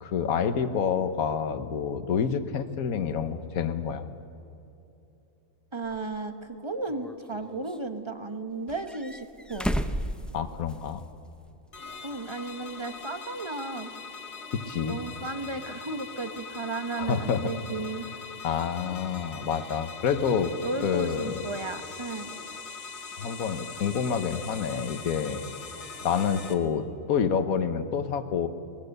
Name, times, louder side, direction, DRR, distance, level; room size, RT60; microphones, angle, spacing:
voice 1, 0.0-4.1 10.3-11.0 14.5-15.0 17.0-17.5 18.4-20.5 20.8-21.4 23.2-25.4 26.0-28.5, left 7 dB, 70° left, 10 dB, 1.5 m, -28 dB
voice 2, 5.7-9.7 12.0-13.9 14.9-18.1 20.6-22.3, right 3 dB, 20° right, 8 dB, 1.1 m, -34 dB
sound 1, 5.9-6.0 6.9-7.8 8.7-11.0 11.3-11.4 13.0-13.1, equal, ahead, 0.3 m, -33 dB
sound 2, 11.7-26.5, left 5 dB, 50° left, 2.1 m, -42 dB
23.5 x 20.5 x 6.7 m, 2.8 s
omnidirectional pair, 1.5 m